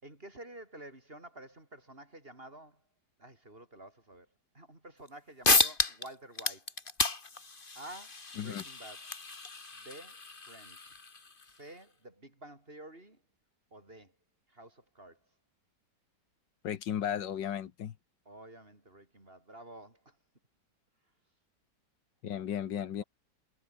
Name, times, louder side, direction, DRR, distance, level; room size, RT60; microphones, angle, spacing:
voice 1, 0.0-2.8 3.2-4.3 4.5-6.7 7.8-9.1 9.7-10.2 10.4-11.0 11.4-13.2 13.7-14.2 14.5-15.2 18.3-20.2, right 1 dB, 30° right, 5.7 m, -50 dB
sound 1, 5.1-5.2 5.4-6.1 6.4-11.5, left 3 dB, 30° left, 2.1 m, -32 dB
voice 2, 16.6-17.9 22.2-23.0, left 9 dB, 80° left, 1.8 m, -35 dB
omnidirectional pair, 1.9 m